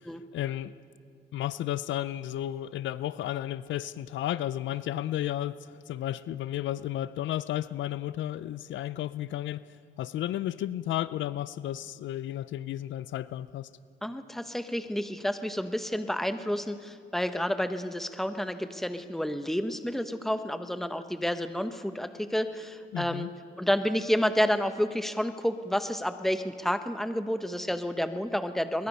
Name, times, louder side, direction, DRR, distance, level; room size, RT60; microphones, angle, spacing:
voice 1, 0.3-0.7 1.3-9.6 10.0-13.7 22.9-23.3, left 12 dB, 70° left, 16 dB, 0.5 m, -33 dB
voice 2, 14.0-23.3 23.6-28.9, equal, ahead, 9 dB, 1.0 m, -30 dB
23.0 x 21.5 x 5.5 m, 2.3 s
cardioid pair, 90°, 20 cm